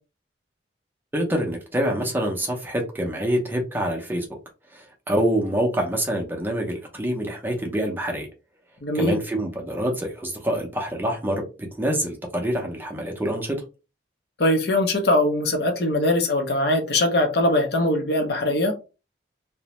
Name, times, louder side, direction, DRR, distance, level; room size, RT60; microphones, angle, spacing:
voice 1, 1.1-4.3 4.7-8.3 8.9-13.6, right 1 dB, 10° right, 1 dB, 0.5 m, -26 dB
voice 2, 8.8-9.2 14.4-18.8, left 1 dB, 60° left, 4 dB, 0.6 m, -21 dB
2.5 x 2.0 x 2.9 m, 0.31 s
head